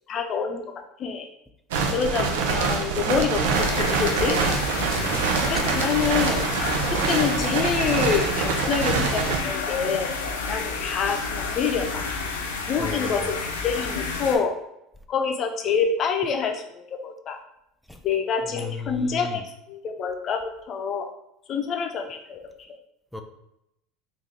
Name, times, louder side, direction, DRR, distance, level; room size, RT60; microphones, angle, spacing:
voice 1, 0.1-1.3 1.9-4.4 5.4-6.5 7.1-10.1 10.5-12.0 12.7-13.4 13.6-14.6 15.1-17.4 18.0-21.1 21.5-22.4, left 6 dB, 45° left, 5 dB, 0.6 m, -27 dB
sound 1, 1.7-9.4, right 5 dB, 80° right, 0.5 m, -25 dB
sound 2, 3.5-14.4, left 4 dB, 90° left, 0.5 m, -30 dB
voice 2, 4.8-5.3 12.8-13.3 17.9-18.0 18.4-19.4 23.1-23.2, left 2 dB, 5° left, 5 dB, 0.5 m, -35 dB
3.7 x 2.6 x 3.4 m, 0.81 s
hypercardioid pair, 80°, 0 cm